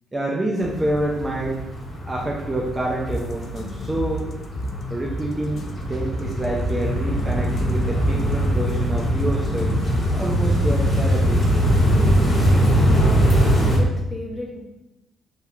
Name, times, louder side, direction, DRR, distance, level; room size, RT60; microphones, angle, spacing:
voice 1, 0.1-1.6 2.1-4.3 4.9-9.8 10.1-11.4, right 1 dB, 20° right, -3 dB, 0.5 m, -27 dB
sound 1, 0.6-13.8, equal, 25° left, 1.5 m, -22 dB
sound 2, 3.1-11.1, left 1 dB, 60° left, 0.3 m, -33 dB
voice 2, 12.8-14.6, left 1 dB, 5° left, -3 dB, 0.9 m, -34 dB
3.3 x 2.7 x 2.4 m, 0.94 s
cardioid pair, 90°, 0 cm